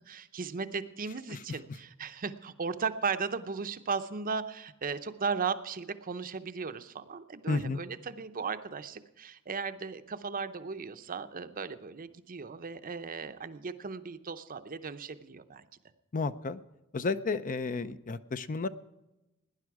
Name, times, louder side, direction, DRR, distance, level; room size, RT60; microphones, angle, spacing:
voice 1, 0.1-15.7, right 5 dB, 40° right, 11 dB, 0.7 m, -36 dB
voice 2, 7.5-7.8 16.1-16.6 16.9-18.7, left 3 dB, 35° left, 13 dB, 0.5 m, -32 dB
18.0 x 10.5 x 4.7 m, 0.96 s
head